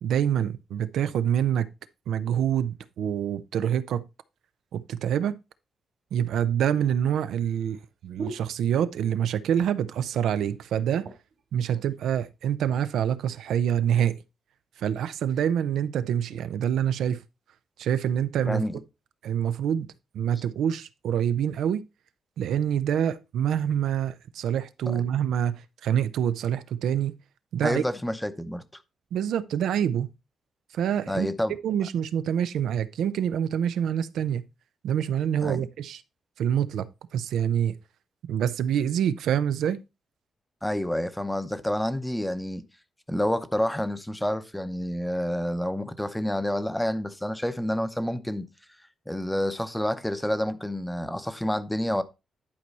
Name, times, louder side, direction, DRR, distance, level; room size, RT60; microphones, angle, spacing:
voice 1, 0.0-1.7 2.1-4.0 4.7-5.3 6.1-11.1 11.5-14.2 14.8-17.2 17.8-18.6 19.2-19.9 20.1-21.8 22.4-27.2 27.5-27.8 29.1-30.1 30.7-31.3 31.6-34.4 34.8-36.0 36.4-36.9 37.1-37.8 38.3-39.8, right 9 dB, 90° right, 0.6 m, -26 dB
sound 1, 6.1-9.2 9.5-10.0 10.3-10.4 10.7-11.4 12.1-12.9 13.5-13.7, right 3 dB, 60° right, 1.9 m, -45 dB
voice 2, 18.5-18.8 24.9-25.0 27.6-28.6 31.1-31.5 35.4-35.6 40.6-42.6 43.1-48.5 49.1-52.0, left 1 dB, 5° left, 0.8 m, -28 dB
11.0 x 4.7 x 4.1 m
cardioid pair, 140°, 0 cm